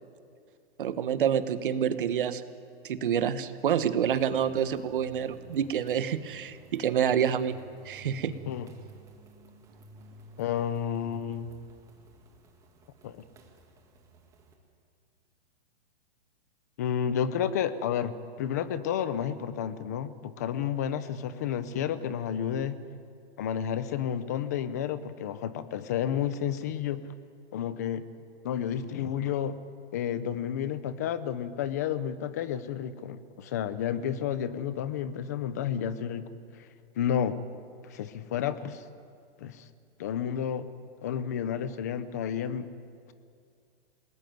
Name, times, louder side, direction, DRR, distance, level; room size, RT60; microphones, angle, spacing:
voice 1, 0.8-2.4 2.8-7.6 7.8-8.3, right 8 dB, 50° right, 12 dB, 1.4 m, -27 dB
sound 1, 4.1-14.6, right 3 dB, 10° right, 1.8 m, -53 dB
voice 2, 10.4-11.5 13.0-13.2 16.8-22.8 23.4-27.0 27.5-28.0 28.4-29.6 29.9-36.3 37.0-37.4 37.8-38.8 39.4-39.6 40.0-40.7 41.0-42.7, left 9 dB, 15° left, 14 dB, 0.6 m, -31 dB
29.5 x 19.5 x 9.3 m, 2.3 s
hypercardioid pair, 175°, 33 cm